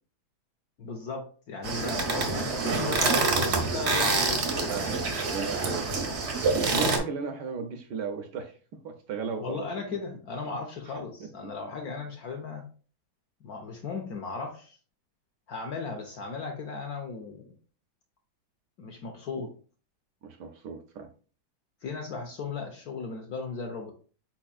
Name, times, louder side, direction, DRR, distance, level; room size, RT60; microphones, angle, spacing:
voice 1, 0.8-4.7 9.4-12.7 13.4-14.8 15.5-17.5 18.8-19.5 21.8-23.9, left 4 dB, 65° left, 3 dB, 0.9 m, -36 dB
sound 1, 1.6-7.0, right 3 dB, 55° right, 0.8 m, -26 dB
voice 2, 5.3-5.9 6.6-8.6 8.8-9.7 11.2-11.3 20.2-21.1, right 5 dB, 75° right, 6 dB, 1.1 m, -35 dB
4.6 x 4.2 x 2.3 m, 0.38 s
omnidirectional pair, 2.1 m